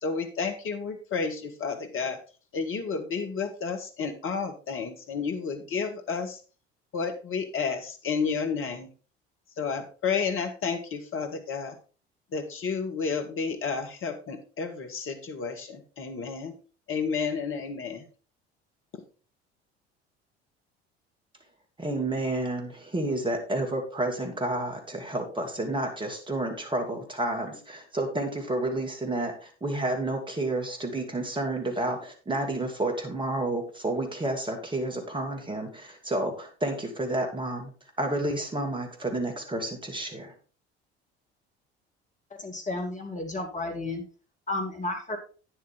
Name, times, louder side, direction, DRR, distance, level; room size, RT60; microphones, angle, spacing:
voice 1, 0.0-2.2 2.5-6.4 6.9-8.9 9.6-11.8 12.3-16.5 16.9-18.1, left 5 dB, 40° left, 6 dB, 1.8 m, -31 dB
voice 2, 21.8-37.7 38.0-40.3, right 2 dB, 15° right, 3 dB, 2.6 m, -30 dB
voice 3, 42.3-44.0 44.5-45.2, left 2 dB, 25° left, 3 dB, 2.4 m, -32 dB
9.5 x 8.0 x 3.7 m, 0.36 s
figure-of-eight pair, 60°, 32 cm